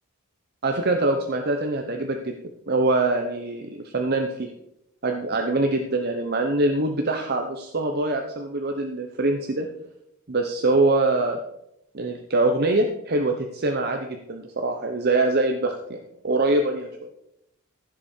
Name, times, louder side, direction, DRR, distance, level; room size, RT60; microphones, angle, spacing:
voice 1, 0.6-2.3 2.7-4.5 5.0-9.7 10.3-11.4 11.9-16.9, right 2 dB, 45° right, 4 dB, 0.9 m, -24 dB
15.5 x 7.4 x 4.5 m, 0.82 s
head